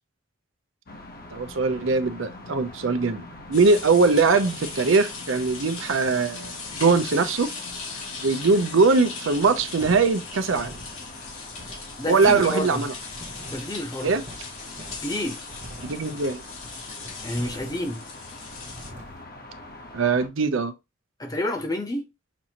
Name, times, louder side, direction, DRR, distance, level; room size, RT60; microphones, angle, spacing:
sound 1, 0.9-20.3, left 2 dB, 50° left, 0.9 m, -43 dB
voice 1, 1.3-7.5 8.2-10.7 12.1-12.9 14.0-14.2 15.8-16.4 19.9-20.7, right 4 dB, 75° right, 0.6 m, -21 dB
sound 2, 3.5-18.9, left 4 dB, 85° left, 1.7 m, -39 dB
sound 3, 9.3-19.2, equal, 40° right, 1.0 m, -45 dB
voice 2, 12.0-12.8 13.5-14.2 15.0-15.4 17.2-18.0 21.2-22.1, left 1 dB, 20° left, 0.8 m, -29 dB
6.1 x 2.6 x 2.9 m
head